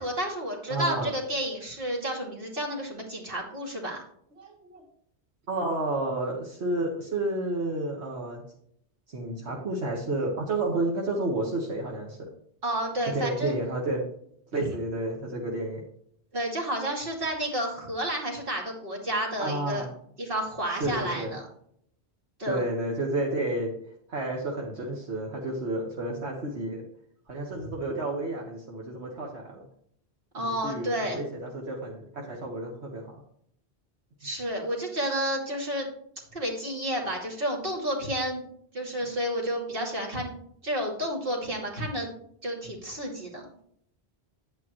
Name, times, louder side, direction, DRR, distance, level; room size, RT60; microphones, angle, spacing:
voice 1, 0.0-4.0 12.6-13.5 16.3-19.9 20.2-21.4 22.4-22.6 30.3-31.2 34.2-35.9 36.3-38.4 38.7-40.3 40.6-42.1 42.4-43.4, equal, 55° right, -1 dB, 2.7 m, -31 dB
voice 2, 0.7-1.1 4.4-4.9 5.5-8.4 9.1-12.3 13.1-14.0 14.5-15.8 19.4-19.9 20.7-21.3 22.4-23.7 24.1-26.8 27.3-29.6 30.6-33.2, right 2 dB, 80° right, -1 dB, 1.7 m, -31 dB
10.5 x 8.7 x 3.1 m, 0.67 s
omnidirectional pair, 1.1 m